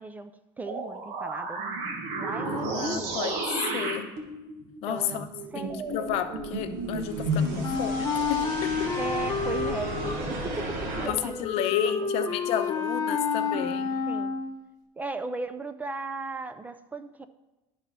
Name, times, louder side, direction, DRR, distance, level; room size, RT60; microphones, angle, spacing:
voice 1, 0.0-3.2 4.9-5.8 9.0-12.2 13.1-13.7 14.1-14.4 15.0-17.3, right 3 dB, 15° right, 11 dB, 0.3 m, -37 dB
sound 1, 0.6-11.1, right 2 dB, 75° right, 1.5 m, -33 dB
voice 2, 2.5-3.3 3.7-4.1 4.8-5.3 5.9-8.9 11.0-14.0, left 9 dB, 60° left, 8 dB, 0.7 m, -31 dB
Wind instrument woodwind instrument, 7.6-14.6, left 5 dB, 30° left, 1.0 m, -30 dB
11.5 x 4.1 x 5.3 m, 1.0 s
cardioid pair, 145°, 12 cm